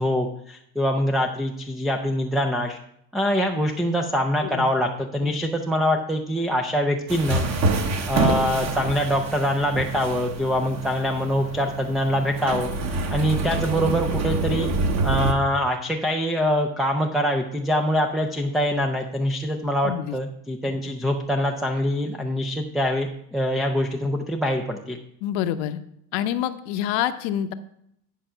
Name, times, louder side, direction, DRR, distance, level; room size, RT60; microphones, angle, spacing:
voice 1, 0.0-2.8 3.1-7.5 8.1-12.7 13.1-14.7 15.0-25.0, equal, ahead, 2 dB, 0.3 m, -24 dB
sound 1, 7.1-15.3, right 3 dB, 35° right, 1.1 m, -26 dB
voice 2, 19.8-20.2 25.2-25.8 26.1-27.5, left 11 dB, 70° left, 10 dB, 0.9 m, -27 dB
10.5 x 4.9 x 5.6 m, 0.73 s
supercardioid pair, 125°, 47 cm